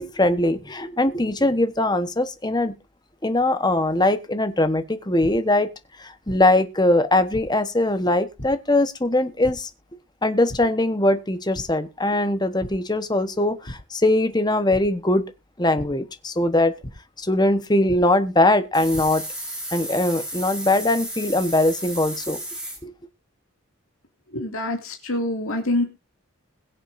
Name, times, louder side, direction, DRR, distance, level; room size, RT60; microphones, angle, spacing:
voice 1, 0.0-2.7 3.2-5.7 6.0-9.7 10.2-15.2 15.6-16.7 17.2-19.2 19.7-22.4 22.8-22.9, left 1 dB, 20° left, 1.1 m, -21 dB
sound 1, 5.2-5.3 6.3-6.4 7.3-7.4 8.4-8.5 9.4-9.5 10.5-10.6 11.0-11.2 11.5-11.6 12.6-12.7 13.6-13.8 14.7-14.8 15.8-15.9 16.8-16.9 17.9-18.0 18.7-19.0, equal, 50° left, 3.4 m, -35 dB
sound 2, 18.7-22.8, right 1 dB, 5° right, 4.2 m, -33 dB
voice 2, 24.3-25.8, left 1 dB, 80° left, 2.3 m, -25 dB
22.0 x 7.4 x 2.6 m
head